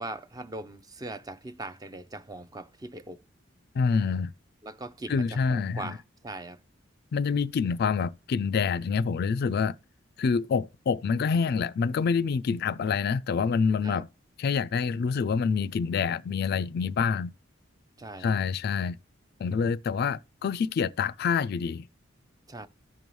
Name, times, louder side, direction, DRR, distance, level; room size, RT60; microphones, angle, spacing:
voice 1, 0.0-3.2 4.6-6.6 13.8-14.0 18.0-18.3 22.5-22.7, right 2 dB, 20° right, 0.5 m, -40 dB
voice 2, 3.7-4.3 5.1-6.0 7.1-9.8 10.2-14.1 14.4-17.3 18.2-19.0 19.4-21.9, left 5 dB, 55° left, 0.3 m, -27 dB
14.5 x 5.3 x 3.1 m
head